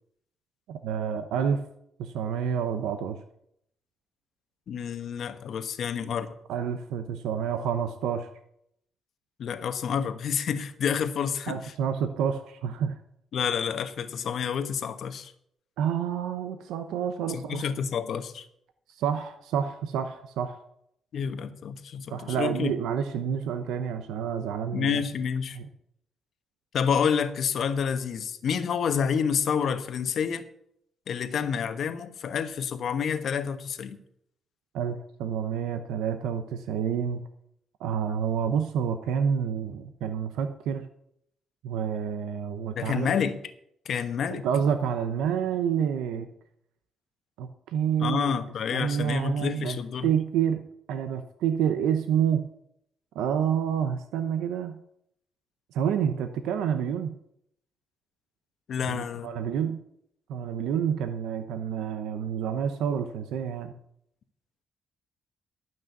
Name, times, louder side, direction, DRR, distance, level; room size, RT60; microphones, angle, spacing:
voice 1, 0.7-1.6 2.0-3.2 6.5-8.3 11.5-13.0 15.8-17.7 18.9-20.6 22.1-25.0 25.6-25.7 34.7-37.2 37.8-40.8 41.6-43.2 44.3-46.3 47.4-48.3 48.7-52.5 53.1-54.8 55.7-57.2 58.9-59.8 60.3-63.7, right 8 dB, 90° right, 8 dB, 0.8 m, -28 dB
voice 2, 4.7-6.3 9.4-11.7 13.3-15.3 17.3-18.4 21.1-22.7 24.7-25.6 26.7-30.4 31.1-34.0 42.7-43.4 43.8-44.4 48.0-50.1 58.7-59.3, left 7 dB, 60° left, 9 dB, 1.1 m, -29 dB
12.0 x 6.2 x 8.1 m, 0.74 s
cardioid pair, 90°, 0 cm